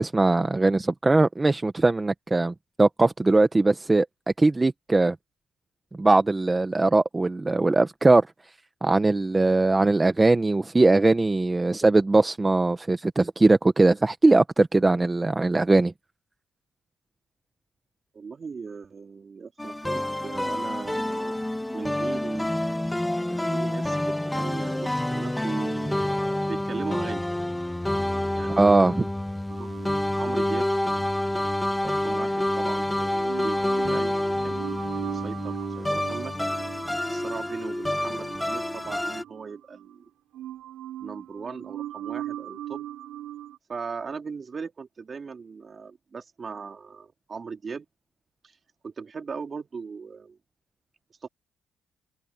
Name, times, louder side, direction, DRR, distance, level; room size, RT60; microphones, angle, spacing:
voice 1, 0.0-4.0 4.4-5.2 6.0-8.3 8.8-15.9 28.6-29.1, right 2 dB, 20° right, 1.1 m, -20 dB
voice 2, 18.1-21.4 21.7-22.5 23.3-26.0 26.5-27.3 28.4-28.8 29.6-29.7 30.1-30.7 31.8-36.7 37.0-40.0 41.0-42.9 43.7-47.9 48.8-50.4 51.2-51.3, right 5 dB, 40° right, 4.1 m, -38 dB
sound 1, 19.6-39.2, left 1 dB, 10° left, 1.3 m, -28 dB
sound 2, 29.5-32.8 33.2-40.0 40.3-43.6, right 13 dB, 85° right, 6.2 m, -40 dB
open air
cardioid pair, 90°, 0 cm